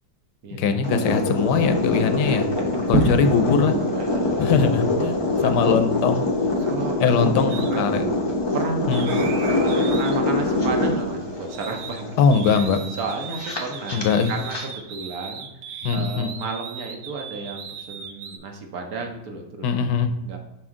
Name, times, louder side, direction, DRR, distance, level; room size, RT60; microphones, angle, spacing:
voice 1, 0.6-2.5 2.9-3.8 4.4-5.2 5.4-6.3 7.0-8.0 8.9-9.1 12.2-12.8 13.9-14.3 15.8-16.4 19.6-20.1, left 6 dB, 80° left, 8 dB, 1.2 m, -21 dB
sound 1, 0.8-14.7, left 2 dB, 35° left, 0.4 m, -24 dB
voice 2, 2.2-3.1 3.9-4.5 5.4-5.8 6.6-8.1 8.5-12.2 13.0-14.0 14.3-19.7 20.2-20.4, right 3 dB, 60° right, 3 dB, 1.2 m, -33 dB
sound 2, 2.3-19.4, right 1 dB, 15° right, 0.7 m, -36 dB
sound 3, 7.5-7.7 8.9-12.0 12.3-18.4, right 7 dB, 90° right, 1.4 m, -38 dB
6.2 x 4.3 x 3.6 m, 0.98 s
omnidirectional pair, 1.9 m